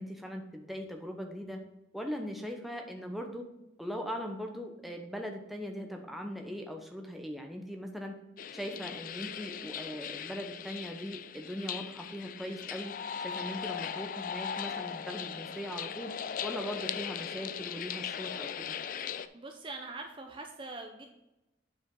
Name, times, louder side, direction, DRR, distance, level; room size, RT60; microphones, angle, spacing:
voice 1, 0.0-1.6 1.9-3.5 3.8-8.2 8.5-16.1 16.4-18.7, equal, ahead, 2 dB, 0.8 m, -40 dB
sound 1, 8.4-19.3, left 8 dB, 45° left, 0.3 m, -39 dB
voice 2, 19.3-21.2, right 3 dB, 25° right, 4 dB, 0.6 m, -43 dB
8.9 x 5.0 x 3.8 m, 0.96 s
head